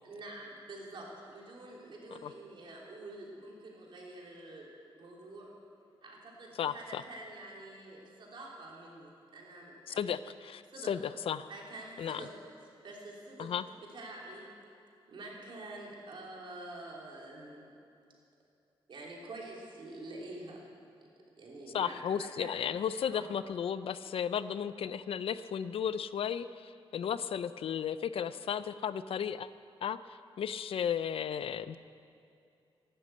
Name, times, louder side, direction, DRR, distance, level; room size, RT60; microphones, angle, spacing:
voice 1, 0.0-4.7 5.0-5.5 6.0-10.1 10.7-10.9 11.5-12.3 12.8-13.5 13.9-14.5 15.1-17.7 18.9-20.7 21.4-22.5 23.1-23.2, right 2 dB, 60° right, -3 dB, 3.2 m, -47 dB
voice 2, 6.6-7.0 9.9-11.5 12.0-12.3 13.4-13.6 21.7-29.5 29.8-31.8, left 8 dB, 80° left, 14 dB, 0.5 m, -34 dB
13.0 x 11.5 x 8.3 m, 2.5 s
wide cardioid pair, 155°, 9 cm